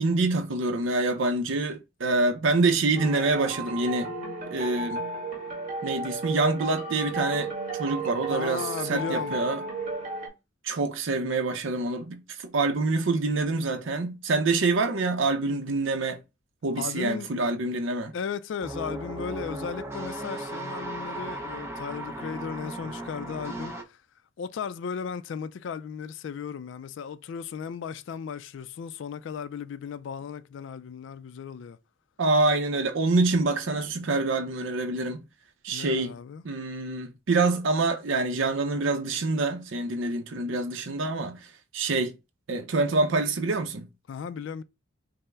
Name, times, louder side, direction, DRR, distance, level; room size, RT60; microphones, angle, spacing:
voice 1, 0.0-4.1 4.5-5.0 5.8-7.5 7.8-9.6 10.6-16.2 16.6-18.1 32.2-35.2 35.6-36.1 36.4-41.4 41.7-42.1 42.5-43.9, right 3 dB, 70° right, 0.6 m, -26 dB
sound 1, 2.9-10.3, right 2 dB, 35° right, 1.6 m, -33 dB
voice 2, 8.3-9.4 16.7-17.3 18.1-24.0 24.4-31.8 35.7-36.4 44.1-44.6, left 6 dB, 65° left, 0.3 m, -36 dB
sound 2, 18.6-23.8, right 1 dB, 15° right, 0.5 m, -36 dB
5.4 x 2.0 x 3.4 m
head